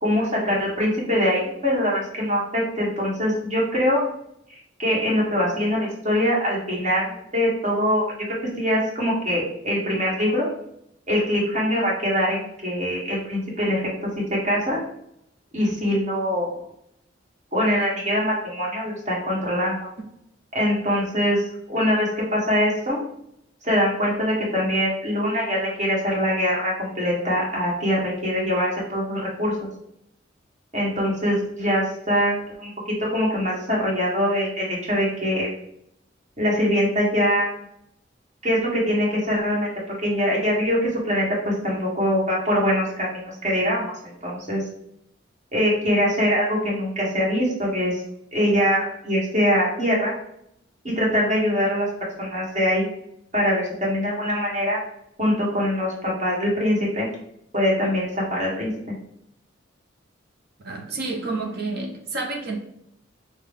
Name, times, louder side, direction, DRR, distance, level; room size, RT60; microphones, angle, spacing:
voice 1, 0.0-4.0 4.8-8.1 8.6-10.5 11.1-13.8 14.4-14.8 15.5-16.5 17.5-19.8 20.5-23.0 23.6-29.5 30.7-32.7 33.1-35.5 36.4-37.6 38.4-39.7 40.0-44.6 45.5-48.0 48.3-50.1 50.8-51.9 52.2-52.9 53.3-54.8 55.2-57.1 57.5-58.7, equal, 35° right, -4 dB, 1.4 m, -23 dB
voice 2, 60.6-62.6, right 3 dB, 55° right, 1 dB, 0.7 m, -29 dB
5.7 x 2.2 x 3.5 m, 0.75 s
head